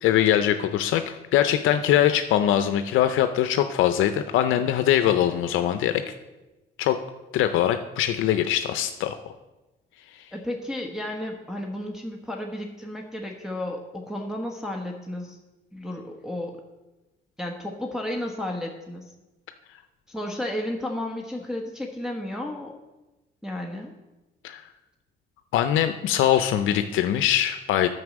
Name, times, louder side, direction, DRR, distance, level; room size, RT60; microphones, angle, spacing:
voice 1, 0.0-6.0 6.8-7.0 7.3-9.2 24.4-24.6 25.5-27.9, left 11 dB, 85° left, 9 dB, 0.5 m, -22 dB
voice 2, 10.3-15.4 15.7-16.6 17.4-19.1 20.1-22.8 23.4-23.9, left 1 dB, 5° right, -1 dB, 1.2 m, -33 dB
9.5 x 5.4 x 7.3 m, 1.1 s
cardioid pair, 90°, 20 cm